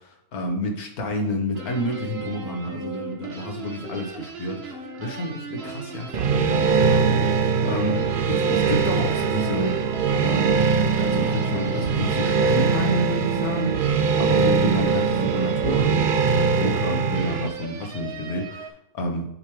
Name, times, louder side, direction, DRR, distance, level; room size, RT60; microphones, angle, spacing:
voice 1, 0.3-19.3, left 1 dB, 75° left, 2 dB, 1.7 m, -29 dB
sound 1, 1.5-18.7, right 5 dB, 50° right, 0.9 m, -37 dB
sound 2, 6.1-17.5, right 5 dB, 80° right, 0.4 m, -22 dB
7.2 x 3.3 x 6.0 m, 0.78 s
omnidirectional pair, 1.6 m